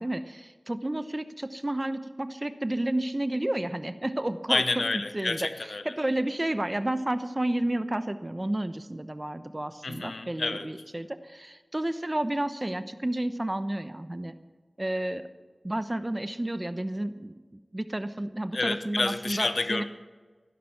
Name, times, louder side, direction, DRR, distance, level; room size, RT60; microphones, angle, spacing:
voice 1, 0.0-4.8 5.1-5.4 5.8-14.3 14.8-15.3 15.6-17.3 17.7-19.8, right 1 dB, 30° right, 11 dB, 0.9 m, -31 dB
voice 2, 4.5-5.9 9.8-10.7 18.5-19.8, left 3 dB, 80° left, 10 dB, 0.9 m, -29 dB
15.0 x 12.0 x 5.9 m, 1.4 s
wide cardioid pair, 65°, 0 cm